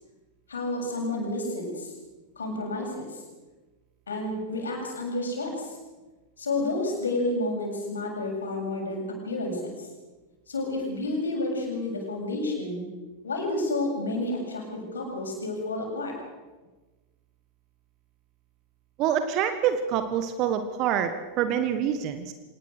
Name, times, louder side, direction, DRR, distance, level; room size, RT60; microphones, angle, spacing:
voice 1, 0.5-1.9 2.4-3.2 4.1-5.8 6.4-9.9 10.5-12.9 13.2-16.1, left 2 dB, 70° left, 0 dB, 7.5 m, -30 dB
voice 2, 19.0-22.3, right 9 dB, 40° right, 9 dB, 1.5 m, -26 dB
25.5 x 19.5 x 6.6 m, 1.2 s
figure-of-eight pair, 90°, 0 cm